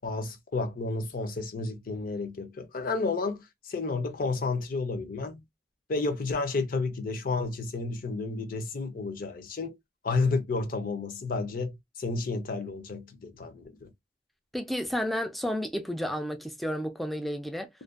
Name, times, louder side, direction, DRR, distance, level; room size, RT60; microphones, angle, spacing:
voice 1, 0.0-5.4 5.9-9.8 10.0-13.9, left 3 dB, 55° left, 0.6 m, -31 dB
voice 2, 14.5-17.7, equal, ahead, 0.3 m, -31 dB
2.5 x 2.1 x 2.3 m
head